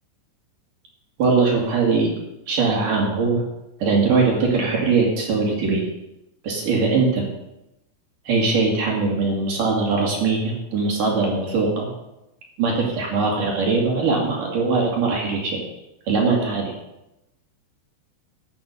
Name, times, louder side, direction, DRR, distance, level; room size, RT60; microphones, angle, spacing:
voice 1, 1.2-2.1 2.5-3.4 3.8-5.9 6.4-7.3 8.3-11.9 12.6-15.6 16.1-16.7, right 4 dB, 55° right, -2 dB, 3.7 m, -21 dB
11.0 x 8.5 x 6.7 m, 0.90 s
omnidirectional pair, 4.9 m